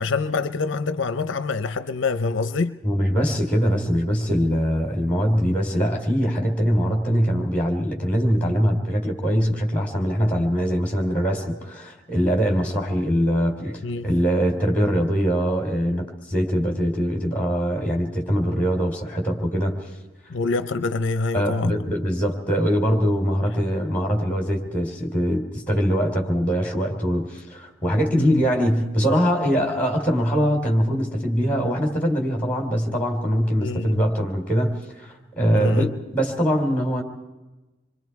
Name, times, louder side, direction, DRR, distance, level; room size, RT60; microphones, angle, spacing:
voice 1, 0.0-2.8 13.8-14.1 20.3-21.9 28.2-28.4 33.6-34.0 35.5-35.9, left 3 dB, 65° left, 0.6 m, -26 dB
voice 2, 2.8-19.8 21.3-35.9 36.1-37.0, equal, 10° left, 3.4 m, -22 dB
27.0 x 23.0 x 4.7 m
head